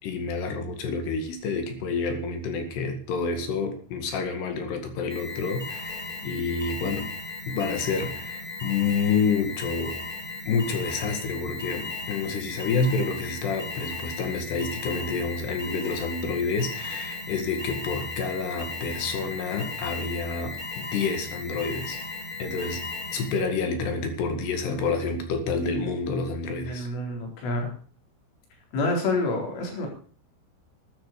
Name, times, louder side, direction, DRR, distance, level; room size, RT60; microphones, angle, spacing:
voice 1, 0.0-7.1 7.5-10.0 10.5-22.0 22.4-22.8 23.1-26.9, left 4 dB, 65° left, 6 dB, 3.9 m, -28 dB
Alarm, 5.1-23.5, left 3 dB, 10° left, 4.9 m, -36 dB
voice 2, 26.6-27.7 28.7-29.9, left 2 dB, 90° left, 1 dB, 6.7 m, -28 dB
12.0 x 10.5 x 6.8 m, 0.43 s
omnidirectional pair, 5.6 m